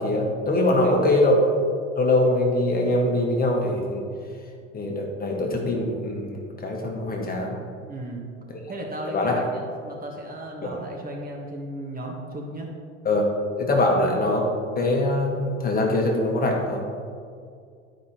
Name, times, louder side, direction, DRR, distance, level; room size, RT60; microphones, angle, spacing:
voice 1, 0.0-1.3 1.9-4.0 4.7-7.6 9.1-9.4 10.6-10.7 13.0-13.3 13.6-14.4 14.7-16.8, left 2 dB, 25° left, 0 dB, 1.4 m, -23 dB
voice 2, 0.7-1.0 7.9-8.2 8.7-12.7, right 1 dB, 25° right, 0 dB, 1.3 m, -35 dB
12.0 x 5.2 x 3.0 m, 2.3 s
hypercardioid pair, 90°, 37 cm